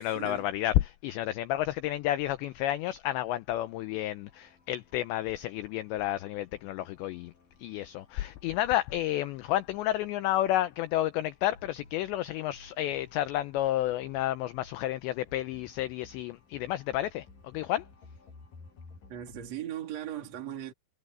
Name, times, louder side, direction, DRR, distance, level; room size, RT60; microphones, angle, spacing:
voice 1, 0.0-7.3 7.6-17.9, left 14 dB, 85° left, 2.5 m, -31 dB
sound 1, 3.5-19.5, left 3 dB, 40° left, 9.2 m, -57 dB
voice 2, 19.1-20.7, right 11 dB, 40° right, 3.2 m, -38 dB
omnidirectional pair, 5.9 m